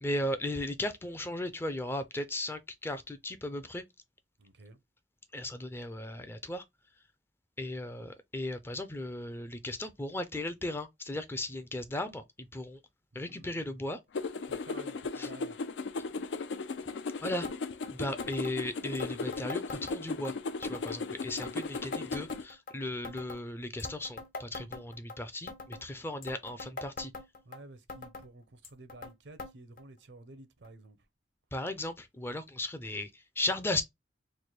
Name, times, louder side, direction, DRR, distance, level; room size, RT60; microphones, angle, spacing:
voice 1, 0.0-3.8 5.3-6.6 7.6-12.8 13.1-14.0 15.2-15.3 17.2-17.5 17.9-20.3 20.6-27.1 31.5-33.8, left 1 dB, 15° left, 0.4 m, -36 dB
voice 2, 4.4-4.8 13.1-13.8 14.5-15.6 27.5-31.0, right 2 dB, 80° right, 0.6 m, -52 dB
sound 1, 14.1-22.4, left 4 dB, 85° left, 0.4 m, -37 dB
sound 2, 17.4-17.6 17.8-17.9 18.2-18.6 18.9-20.3 20.6-21.0 21.4-22.7 23.0-23.4 23.8-25.2 25.5-25.8 26.2-27.6 27.9-28.3 28.6-29.1 29.4-29.5 29.8-29.9 30.6-30.7 31.5-31.6, left 3 dB, 50° left, 0.7 m, -43 dB
3.2 x 2.1 x 4.2 m
head